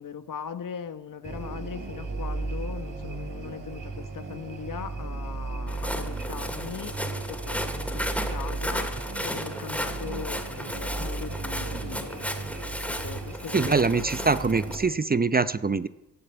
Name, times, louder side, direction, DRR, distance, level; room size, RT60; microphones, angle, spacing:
voice 1, 0.0-12.3 12.9-14.1, left 7 dB, 50° left, 1.3 m, -39 dB
sound 1, 1.2-14.9, right 3 dB, 50° right, 3.4 m, -35 dB
Walk footsteps, 5.7-14.8, equal, 5° left, 3.1 m, -35 dB
voice 2, 13.5-15.9, right 4 dB, 20° right, 0.7 m, -24 dB
16.5 x 6.5 x 8.9 m
hypercardioid pair, 45°, 41 cm